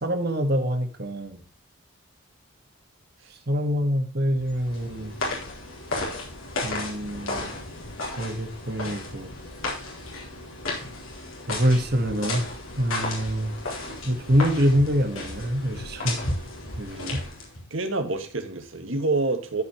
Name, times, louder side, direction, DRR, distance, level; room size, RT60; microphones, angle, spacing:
voice 1, 0.0-1.4 3.5-5.1 6.6-7.6 8.2-9.3 11.5-12.5 12.8-13.5 14.0-16.2 16.8-17.2, equal, 50° right, 6 dB, 1.7 m, -25 dB
sound 1, 4.4-17.7, left 2 dB, 80° left, 3.9 m, -34 dB
voice 2, 17.7-19.6, right 3 dB, 70° right, 6 dB, 1.9 m, -27 dB
14.0 x 5.4 x 3.0 m, 0.36 s
head